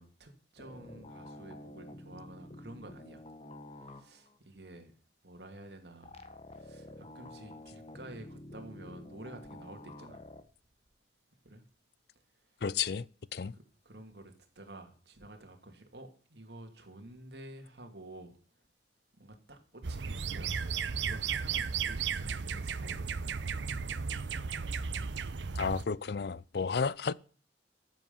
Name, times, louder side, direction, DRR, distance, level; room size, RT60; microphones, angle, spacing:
voice 1, 0.0-3.2 3.7-4.9 5.2-6.2 6.5-10.3 11.4-11.6 13.5-18.4 19.2-20.6 21.0-23.5 25.4-25.7, right 1 dB, 65° right, 2.8 m, -50 dB
sound 1, 0.6-4.4 6.0-10.4, left 1 dB, 35° left, 1.3 m, -49 dB
voice 2, 12.6-13.1 13.3-13.5 25.6-27.1, left 5 dB, 60° left, 0.5 m, -32 dB
sound 2, 19.8-25.8, right 6 dB, 80° right, 0.7 m, -35 dB
13.5 x 7.6 x 7.2 m
head